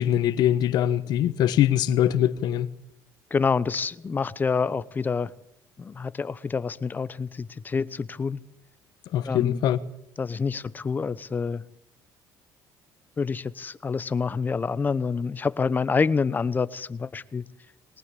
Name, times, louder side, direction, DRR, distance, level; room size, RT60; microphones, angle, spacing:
voice 1, 0.0-2.7 9.1-9.8, left 11 dB, 65° left, 1.3 m, -22 dB
voice 2, 3.3-5.3 5.8-8.4 9.3-9.6 10.2-11.6 13.2-17.4, left 5 dB, 25° left, 0.9 m, -27 dB
22.0 x 20.5 x 8.4 m
cardioid pair, 125°, 8 cm